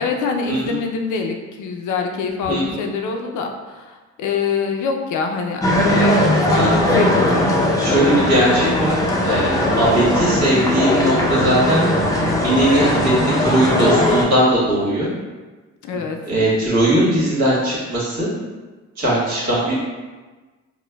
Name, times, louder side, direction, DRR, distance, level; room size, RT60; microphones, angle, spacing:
voice 1, 0.0-8.2 15.8-16.2, left 5 dB, 75° left, 3 dB, 0.5 m, -25 dB
voice 2, 2.5-2.8 6.5-6.7 7.8-9.0 9.2-11.9 12.4-15.1 15.9-18.3 19.0-19.8, right 1 dB, 60° right, -7 dB, 1.5 m, -19 dB
sound 1, 5.6-14.2, left 1 dB, 10° left, 0.5 m, -18 dB
4.4 x 2.1 x 2.2 m, 1.3 s
cardioid pair, 90°, 30 cm